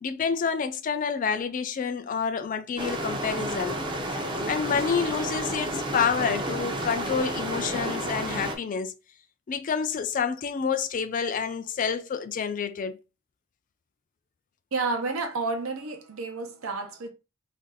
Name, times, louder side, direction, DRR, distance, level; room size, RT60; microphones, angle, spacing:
voice 1, 0.0-3.8 4.1-8.9 9.5-13.0, left 6 dB, 40° left, 0.3 m, -28 dB
sound 1, 2.8-8.6, right 1 dB, 25° right, 0.5 m, -31 dB
voice 2, 14.7-17.1, right 3 dB, 80° right, 0.7 m, -30 dB
2.5 x 2.5 x 3.8 m
head